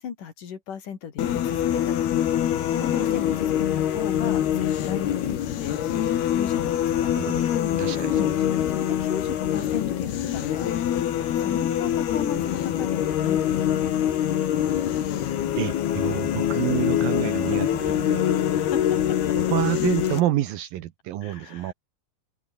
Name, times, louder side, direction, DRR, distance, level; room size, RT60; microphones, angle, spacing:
voice 1, 0.0-2.2 2.7-7.1 7.9-8.3 8.7-14.1 17.8-18.0 18.6-19.0 19.3-19.4 21.2-21.7, left 7 dB, 55° left, 3.9 m, -36 dB
sound 1, 1.2-20.2, left 10 dB, 70° left, 3.9 m, -24 dB
voice 2, 7.8-8.3 15.6-18.2 19.4-21.7, right 13 dB, 70° right, 2.6 m, -28 dB
open air
omnidirectional pair, 4.8 m